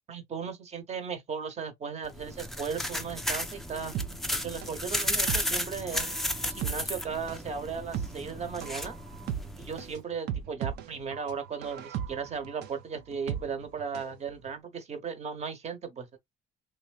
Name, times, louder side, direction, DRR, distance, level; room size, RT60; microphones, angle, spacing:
voice 1, 0.1-3.9 4.3-6.1 6.4-8.9 9.6-16.2, right 6 dB, 40° right, 1.1 m, -36 dB
sound 1, 2.0-9.9, left 1 dB, ahead, 0.5 m, -34 dB
sound 2, 3.9-14.2 14.5-14.6, right 9 dB, 75° right, 0.6 m, -37 dB
3.4 x 2.9 x 2.4 m
cardioid pair, 110°, 17 cm